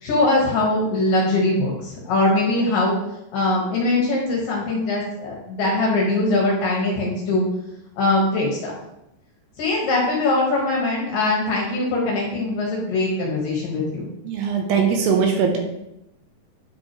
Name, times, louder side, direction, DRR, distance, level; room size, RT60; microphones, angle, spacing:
voice 1, 0.0-2.9 3.3-7.5 8.0-8.7 9.6-14.1, left 2 dB, 65° left, -3 dB, 2.5 m, -21 dB
voice 2, 14.2-15.6, right 6 dB, 75° right, 3 dB, 2.8 m, -20 dB
9.8 x 6.2 x 3.0 m, 0.86 s
omnidirectional pair, 5.2 m